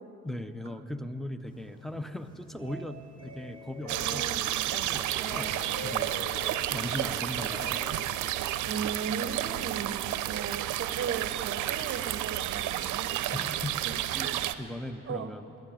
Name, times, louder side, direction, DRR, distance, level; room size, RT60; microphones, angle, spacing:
voice 1, 0.2-4.3 4.7-6.4 6.7-8.1 13.3-13.9 14.1-15.5, left 1 dB, ahead, 11 dB, 0.5 m, -39 dB
sound 1, 1.5-8.5, equal, 15° left, 3.7 m, -44 dB
voice 2, 3.9-4.5 5.2-5.5 8.6-13.1 13.9-14.7 15.1-15.3, right 6 dB, 40° right, 10 dB, 0.8 m, -37 dB
sound 2, 3.9-14.6, right 13 dB, 80° right, 0.5 m, -31 dB
10.5 x 9.6 x 9.0 m, 2.9 s
cardioid pair, 90°, 30 cm